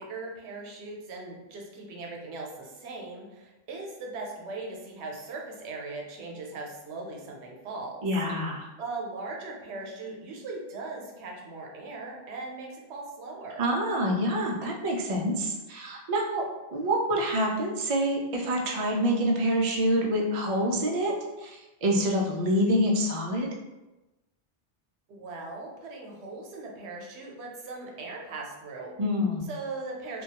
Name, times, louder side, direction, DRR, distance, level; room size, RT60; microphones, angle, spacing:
voice 1, 0.0-8.1 8.8-13.6 25.1-28.9 29.5-30.2, right 3 dB, 85° right, 0 dB, 0.9 m, -39 dB
voice 2, 8.0-8.7 13.6-16.5 16.7-23.5 29.0-29.5, equal, 60° right, 0 dB, 0.3 m, -26 dB
2.3 x 2.2 x 2.8 m, 1.0 s
omnidirectional pair, 1.1 m